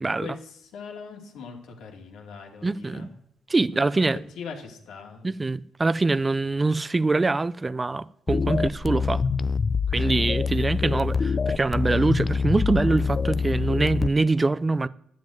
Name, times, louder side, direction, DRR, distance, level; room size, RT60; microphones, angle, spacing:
voice 1, 0.2-3.1 3.7-4.0 4.3-5.3 10.0-10.2, left 5 dB, 85° left, 2.6 m, -41 dB
voice 2, 2.6-3.1 3.5-4.2 5.2-9.2 9.9-14.9, right 3 dB, 25° right, 0.4 m, -24 dB
sound 1, 8.3-14.1, left 5 dB, 35° left, 0.5 m, -25 dB
11.0 x 7.5 x 9.1 m
cardioid pair, 90°, 0 cm